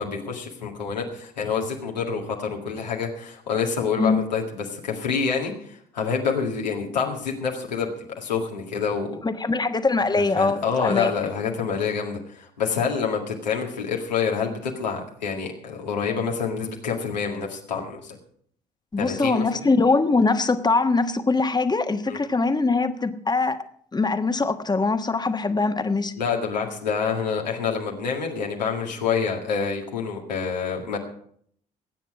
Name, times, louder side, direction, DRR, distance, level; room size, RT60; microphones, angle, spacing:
voice 1, 0.0-9.2 10.2-18.2 19.0-19.4 22.1-22.2 26.2-31.0, left 6 dB, 90° left, 0 dB, 2.0 m, -27 dB
voice 2, 9.2-11.1 18.9-23.6 23.9-26.1, left 3 dB, 20° left, 8 dB, 1.3 m, -22 dB
21.0 x 9.2 x 4.9 m, 0.63 s
hypercardioid pair, 50°, 21 cm